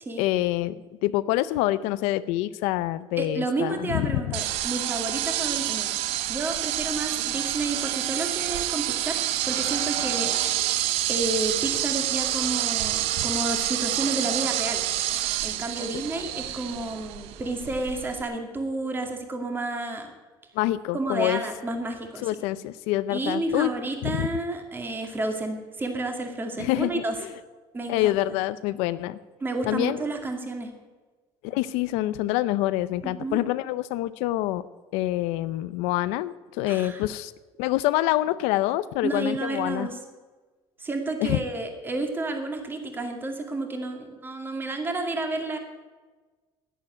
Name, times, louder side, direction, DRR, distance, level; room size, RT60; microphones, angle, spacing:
voice 1, 0.2-4.4 20.5-21.4 22.2-23.7 24.0-24.3 26.6-27.3 27.9-29.2 29.7-30.0 31.4-34.6 34.9-37.3 37.6-39.9 41.2-41.4, left 15 dB, 90° left, 14 dB, 0.6 m, -26 dB
voice 2, 3.2-5.9 6.3-10.4 11.1-14.8 15.4-20.1 20.9-22.3 23.1-27.2 27.7-28.1 29.4-30.7 33.0-33.4 36.6-37.0 39.0-40.0 40.8-45.6, right 2 dB, 20° right, 4 dB, 2.3 m, -30 dB
sound 1, 4.3-18.2, right 14 dB, 75° right, 0.8 m, -28 dB
11.0 x 10.0 x 9.6 m, 1.3 s
cardioid pair, 130°, 11 cm